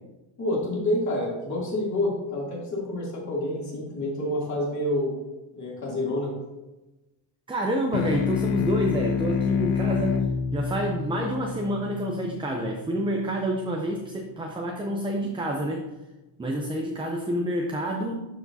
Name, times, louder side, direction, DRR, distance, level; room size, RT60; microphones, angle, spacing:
voice 1, 0.4-5.1 5.5-6.3, left 1 dB, 35° left, -4 dB, 2.7 m, -28 dB
voice 2, 7.5-10.3 10.5-15.9 16.4-18.2, right 1 dB, 10° right, 1 dB, 0.5 m, -28 dB
sound 1, 7.9-12.8, left 6 dB, 85° left, 0.6 m, -27 dB
12.0 x 4.8 x 2.7 m, 1.0 s
cardioid pair, 145°, 50 cm